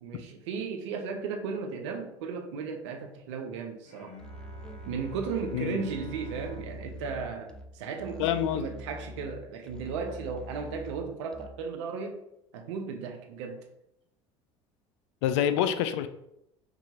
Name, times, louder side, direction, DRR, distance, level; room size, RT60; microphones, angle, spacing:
voice 1, 0.0-4.2 4.8-12.2 12.5-13.7, right 5 dB, 80° right, 4 dB, 0.7 m, -35 dB
Bowed string instrument, 3.8-9.1, right 4 dB, 50° left, 1.0 m, -50 dB
Musical instrument, 4.2-11.8, equal, 5° left, 0.4 m, -44 dB
voice 2, 8.2-8.6 15.2-16.1, left 10 dB, 80° left, 10 dB, 0.4 m, -26 dB
4.9 x 2.8 x 2.8 m, 0.80 s
hypercardioid pair, 85°, 15 cm